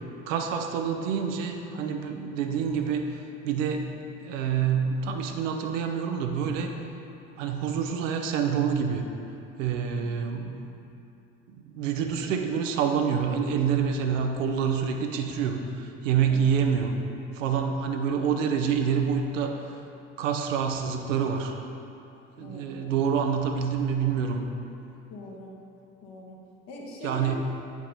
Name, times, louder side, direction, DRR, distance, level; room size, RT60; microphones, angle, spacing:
voice 1, 0.3-6.7 7.4-9.1 9.6-10.6 11.5-17.0 17.3-19.6 20.2-21.6 22.4-24.4 27.0-27.4, right 7 dB, 75° right, 4 dB, 0.7 m, -27 dB
voice 2, 22.4-23.0 25.1-25.5 26.0-26.4 26.7-27.4, left 2 dB, 60° left, -2 dB, 1.4 m, -42 dB
8.5 x 4.8 x 4.1 m, 2.8 s
figure-of-eight pair, 55°, 39 cm